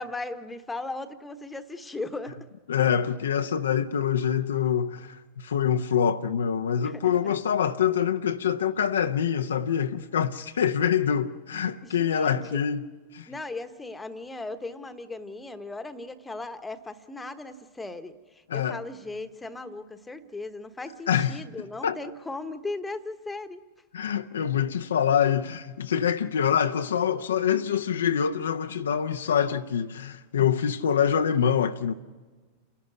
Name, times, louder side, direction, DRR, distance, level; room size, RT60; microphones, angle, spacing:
voice 1, 0.0-2.5 6.8-7.4 11.8-12.6 13.3-23.6, left 2 dB, 10° left, 1.1 m, -37 dB
voice 2, 2.7-12.9 13.1-13.3 18.5-18.8 21.1-21.4 21.8-22.0 23.9-31.9, left 8 dB, 65° left, 0.7 m, -25 dB
29.0 x 11.5 x 9.3 m
figure-of-eight pair, 90°, 0 cm